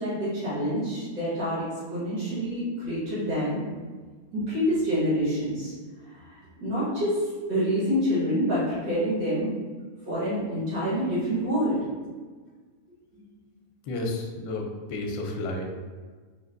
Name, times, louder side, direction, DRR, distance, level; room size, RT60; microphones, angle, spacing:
voice 1, 0.0-3.6 4.3-5.7 6.3-6.4 6.6-7.2 7.5-9.5 10.1-11.8, equal, 80° right, -10 dB, 2.1 m, -27 dB
voice 2, 13.8-15.7, left 2 dB, 75° left, 1 dB, 1.1 m, -31 dB
5.3 x 2.5 x 2.5 m, 1.5 s
omnidirectional pair, 1.7 m